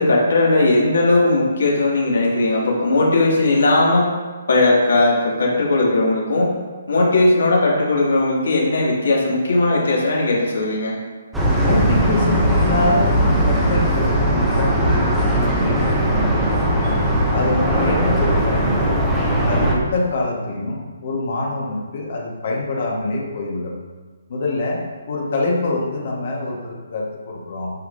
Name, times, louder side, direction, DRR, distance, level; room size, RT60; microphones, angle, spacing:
voice 1, 0.0-4.1 4.5-6.5 6.9-10.9, left 2 dB, 70° left, -3 dB, 2.1 m, -17 dB
sound 1, 11.3-19.8, right 1 dB, 5° right, 0.6 m, -19 dB
voice 2, 11.6-17.0 17.3-19.1 19.4-23.8 24.3-27.7, left 2 dB, 40° left, -2 dB, 1.4 m, -25 dB
8.5 x 5.8 x 2.7 m, 1.4 s
hypercardioid pair, 180°, 0 cm